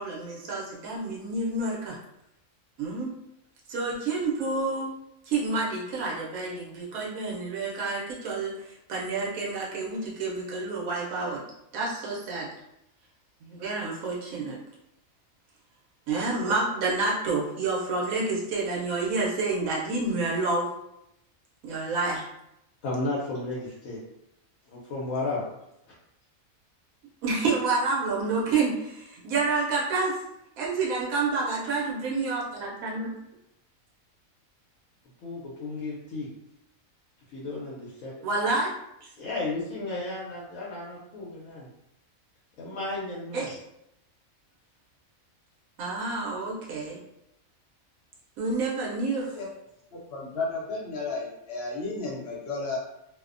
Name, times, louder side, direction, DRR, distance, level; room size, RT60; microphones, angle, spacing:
voice 1, 0.0-2.0 2.8-3.1 3.7-4.9 5.3-11.4 11.7-12.5 13.4-14.6 16.1-20.7 21.6-22.3 27.2-30.2 30.6-33.2 38.2-38.7 39.0-39.1 43.3-43.6 45.8-47.0 48.4-49.3, right 3 dB, 85° right, -4 dB, 1.0 m, -29 dB
voice 2, 22.8-24.0 24.7-25.4 35.2-36.3 37.3-38.1 39.2-41.7 42.6-43.5, left 2 dB, 75° left, -5 dB, 1.0 m, -33 dB
voice 3, 49.9-52.8, left 3 dB, 60° left, -4 dB, 0.8 m, -33 dB
2.6 x 2.0 x 2.4 m, 0.82 s
omnidirectional pair, 1.4 m